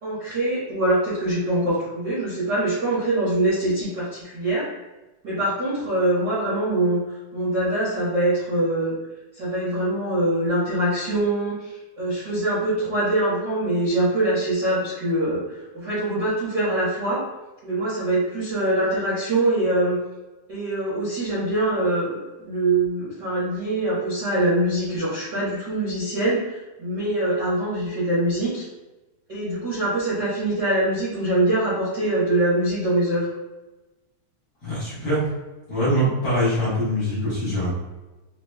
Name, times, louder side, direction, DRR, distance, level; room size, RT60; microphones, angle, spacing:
voice 1, 0.0-4.6 5.2-7.0 7.3-8.9 9.3-17.2 17.6-20.0 20.5-28.7 29.3-33.3, right 1 dB, 55° right, -10 dB, 1.2 m, -23 dB
voice 2, 34.6-35.3 35.7-37.7, equal, 50° left, -9 dB, 1.9 m, -23 dB
5.1 x 3.0 x 2.2 m, 1.1 s
omnidirectional pair, 3.7 m